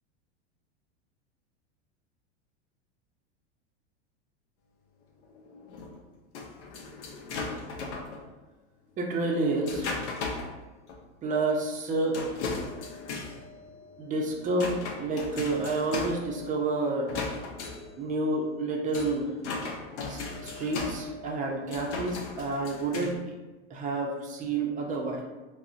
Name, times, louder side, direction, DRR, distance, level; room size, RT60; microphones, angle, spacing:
sound 1, 5.2-8.2 9.0-10.6 10.9-11.0 11.3-11.4 12.1-23.2, left 3 dB, 70° left, 0.7 m, -37 dB
voice 1, 9.0-9.9 11.2-12.2 14.0-17.1 18.0-19.3 20.1-23.2 23.7-25.2, right 2 dB, 25° right, 0 dB, 0.4 m, -29 dB
3.7 x 2.0 x 2.4 m, 1.2 s
hypercardioid pair, 110°, 35 cm